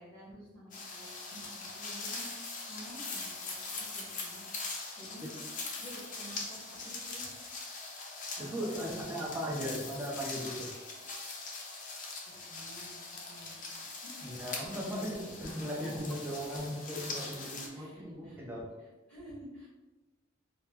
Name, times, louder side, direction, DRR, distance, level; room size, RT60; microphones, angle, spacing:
voice 1, 0.0-4.4 4.9-5.3 5.8-7.3 8.7-9.4 12.2-14.1 14.9-15.0 15.8-15.9 17.1-18.5 18.8-19.7, right 1 dB, 5° left, -7 dB, 1.2 m, -51 dB
sound 1, 0.7-17.7, left 3 dB, 40° left, 0.5 m, -42 dB
voice 2, 8.4-10.7 14.2-18.7, equal, 10° right, -4 dB, 0.6 m, -38 dB
3.9 x 2.1 x 2.9 m, 1.1 s
head